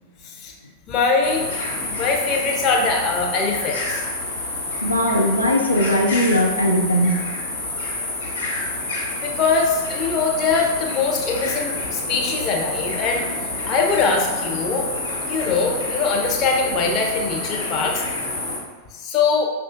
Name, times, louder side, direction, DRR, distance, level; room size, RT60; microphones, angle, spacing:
voice 1, 0.9-1.5 1.9-4.0 9.2-13.2 13.7-14.9 15.2-18.0 18.9-19.5, left 4 dB, 35° left, 1 dB, 0.6 m, -22 dB
sound 1, 1.2-18.6, left 2 dB, 65° left, 1.1 m, -28 dB
voice 2, 4.8-7.2, equal, 90° left, 0 dB, 0.3 m, -19 dB
5.3 x 2.3 x 2.5 m, 1.3 s
figure-of-eight pair, 90°, 0 cm